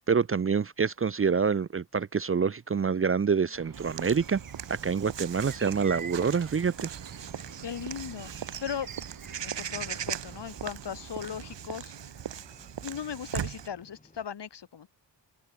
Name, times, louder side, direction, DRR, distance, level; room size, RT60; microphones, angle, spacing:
voice 1, 0.0-4.4 4.7-6.9, right 6 dB, 30° right, 0.7 m, -26 dB
sound 1, 3.5-11.6, right 6 dB, 50° right, 3.1 m, -46 dB
Walk footsteps / Bird vocalization bird call bird song, 3.7-13.7, right 9 dB, 75° right, 2.8 m, -39 dB
sound 2, 6.9-14.3, left 2 dB, 20° left, 6.4 m, -60 dB
voice 2, 7.6-8.9 9.4-11.9 12.8-14.9, left 8 dB, 70° left, 4.0 m, -38 dB
open air
cardioid pair, 90°, 43 cm